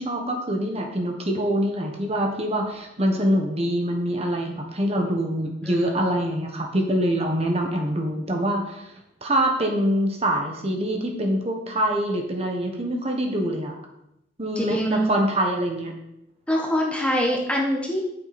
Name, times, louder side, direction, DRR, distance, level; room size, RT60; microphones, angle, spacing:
voice 1, 0.0-8.9 9.2-13.7 14.4-15.9, equal, 30° right, 2 dB, 1.3 m, -25 dB
voice 2, 5.6-5.9 14.6-15.0 16.5-18.1, equal, 5° left, 0 dB, 1.2 m, -24 dB
9.0 x 8.2 x 4.3 m, 0.84 s
head